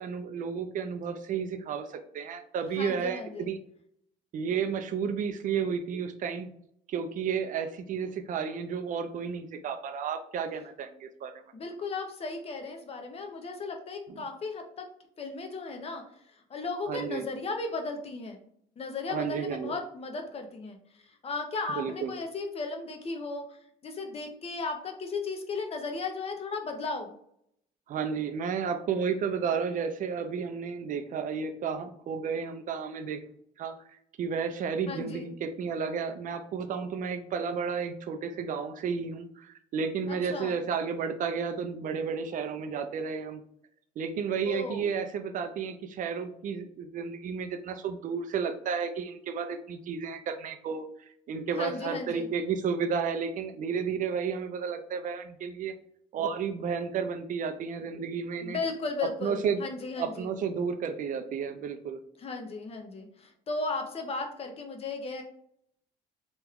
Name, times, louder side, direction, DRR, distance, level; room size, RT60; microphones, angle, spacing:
voice 1, 0.0-3.6 4.3-6.5 6.9-11.3 16.9-17.3 19.1-19.7 21.7-22.1 27.9-33.2 33.6-33.7 34.2-43.4 44.0-55.7 56.1-58.6 59.0-59.6 60.0-62.0, right 6 dB, 50° right, 7 dB, 0.4 m, -32 dB
voice 2, 2.7-3.5 11.5-14.9 15.2-18.4 18.8-20.8 21.0-23.6 23.8-27.1 34.9-35.3 40.1-40.6 44.4-44.8 51.6-52.3 58.4-60.3 62.2-65.2, left 3 dB, 35° left, 4 dB, 0.6 m, -35 dB
3.0 x 2.3 x 3.5 m, 0.69 s
cardioid pair, 110°, 17 cm